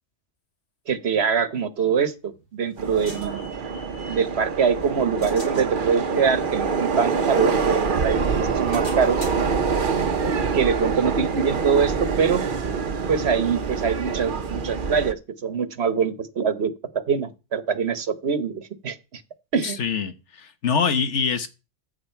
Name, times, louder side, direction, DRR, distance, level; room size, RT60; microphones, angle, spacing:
voice 1, 0.9-3.5 4.1-9.2 10.5-12.4 13.1-19.2 19.5-19.8, right 6 dB, 65° right, 1.3 m, -24 dB
sound 1, 2.1-4.3 4.8-7.9 8.3-11.8, equal, 45° left, 7.9 m, -44 dB
Subway metro underground, 2.8-15.1, right 5 dB, 50° right, 1.0 m, -25 dB
voice 2, 19.6-21.5, left 6 dB, 90° left, 1.5 m, -24 dB
14.5 x 8.1 x 4.5 m
omnidirectional pair, 1.2 m